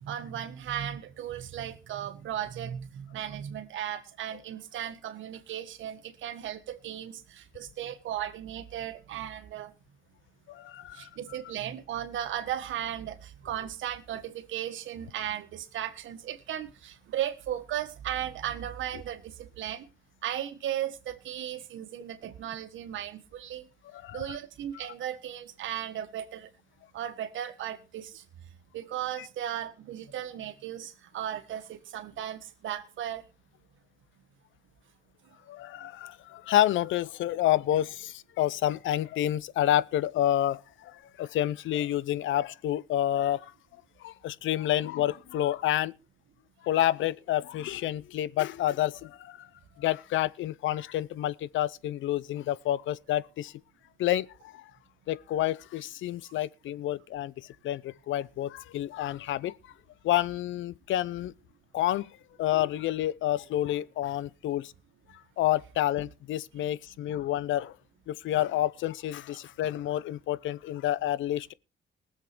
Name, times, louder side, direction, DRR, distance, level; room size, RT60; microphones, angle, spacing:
voice 1, 0.0-9.7 10.9-19.9 20.2-23.7 24.1-26.5 26.9-28.2 28.7-33.2, right 11 dB, 80° right, 1.5 m, -36 dB
voice 2, 10.5-11.1 23.9-24.2 35.5-43.5 44.0-45.9 46.6-49.5 49.8-53.5 54.0-54.6 55.1-57.3 57.6-59.5 60.0-61.3 61.7-62.1 62.4-64.7 65.4-67.7 68.1-71.5, left 13 dB, 75° left, 0.6 m, -29 dB
19.5 x 7.4 x 4.5 m
cardioid pair, 90°, 20 cm